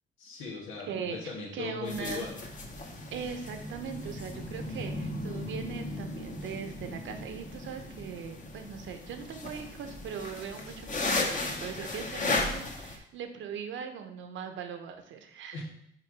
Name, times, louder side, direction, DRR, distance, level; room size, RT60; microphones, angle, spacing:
voice 1, 0.2-2.4 15.5-15.6, left 4 dB, 90° left, -2 dB, 1.9 m, -38 dB
voice 2, 0.9-2.3 3.1-15.6, right 7 dB, 75° right, 6 dB, 1.0 m, -40 dB
sound 1, 1.9-13.0, left 2 dB, 40° left, 1.5 m, -36 dB
6.0 x 4.7 x 4.7 m, 0.73 s
cardioid pair, 90°, 20 cm